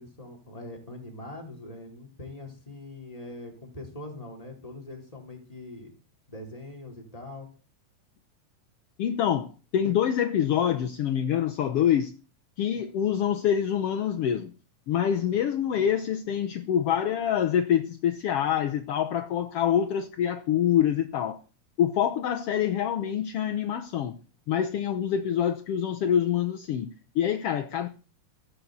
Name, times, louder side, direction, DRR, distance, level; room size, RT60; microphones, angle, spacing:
voice 1, 0.0-5.9 6.3-7.5, left 2 dB, 10° left, 4.2 m, -42 dB
voice 2, 9.0-12.1 12.6-14.5 14.9-21.4 21.8-24.2 24.5-27.9, left 9 dB, 65° left, 1.5 m, -26 dB
18.0 x 7.6 x 8.1 m
omnidirectional pair, 3.8 m